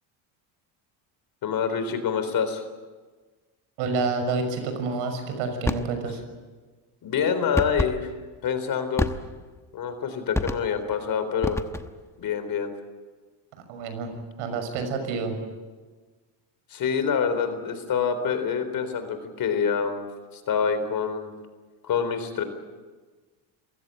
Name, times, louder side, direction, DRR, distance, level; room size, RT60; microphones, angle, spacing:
voice 1, 1.4-2.6 7.0-8.1 8.4-9.1 9.7-11.6 12.2-12.7 16.7-20.0 20.3-21.3 21.8-22.4, left 6 dB, 45° left, 10 dB, 4.0 m, -26 dB
voice 2, 3.8-6.2 13.7-14.1 14.4-15.4, right 4 dB, 80° right, 7 dB, 6.2 m, -28 dB
sound 1, 5.6-6.0 7.6-8.0 9.0-9.5 10.3-10.8 11.4-12.0, left 2 dB, 5° left, 1.0 m, -28 dB
27.5 x 16.0 x 9.1 m, 1.4 s
cardioid pair, 115°, 48 cm